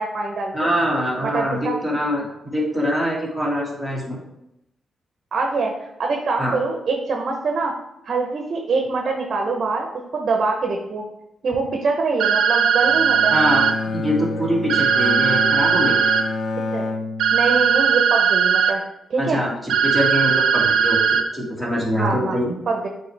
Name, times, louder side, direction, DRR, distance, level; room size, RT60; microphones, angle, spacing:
voice 1, 0.0-0.7 1.2-1.8 5.3-7.7 8.0-11.0 11.4-13.3 16.7-16.9 17.3-18.8 19.1-19.4 22.0-22.4 22.7-22.9, right 4 dB, 55° right, 2 dB, 0.8 m, -24 dB
voice 2, 0.5-4.2 6.4-6.6 13.3-13.6 13.9-16.1 19.2-22.5, equal, 5° left, -4 dB, 2.0 m, -24 dB
sound 1, 12.2-13.7 14.7-16.2 17.2-18.7 19.7-21.2, right 7 dB, 90° right, 0.6 m, -18 dB
Bowed string instrument, 12.8-18.0, left 3 dB, 60° left, 0.7 m, -29 dB
8.5 x 3.3 x 3.4 m, 0.86 s
cardioid pair, 105°, 0 cm